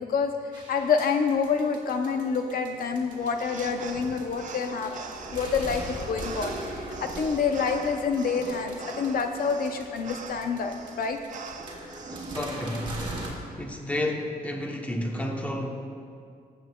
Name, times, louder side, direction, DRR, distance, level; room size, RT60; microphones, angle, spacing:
voice 1, 0.0-4.9 5.3-11.2, left 5 dB, 65° left, 5 dB, 0.6 m, -27 dB
sound 1, 0.5-13.3, right 1 dB, 30° right, 1.8 m, -40 dB
sound 2, 3.1-12.4, right 5 dB, 50° right, 0.7 m, -43 dB
voice 2, 12.1-13.0 13.6-15.7, left 1 dB, 10° left, 1 dB, 0.9 m, -31 dB
20.0 x 7.9 x 2.3 m, 2.3 s
wide cardioid pair, 160°, 16 cm